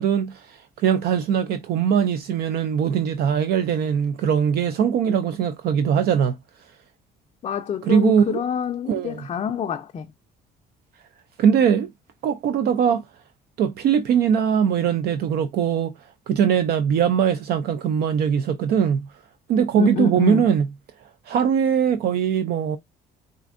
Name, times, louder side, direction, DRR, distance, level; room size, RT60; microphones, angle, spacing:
voice 1, 0.0-6.4 7.8-8.4 8.9-9.3 11.4-11.9 12.2-13.0 13.6-15.9 16.3-19.1 19.5-20.7 21.3-22.8, right 8 dB, 70° right, 0.4 m, -21 dB
voice 2, 7.4-10.1 19.8-20.5, left 7 dB, 35° left, 0.4 m, -26 dB
4.3 x 2.5 x 2.4 m
cardioid pair, 110°, 17 cm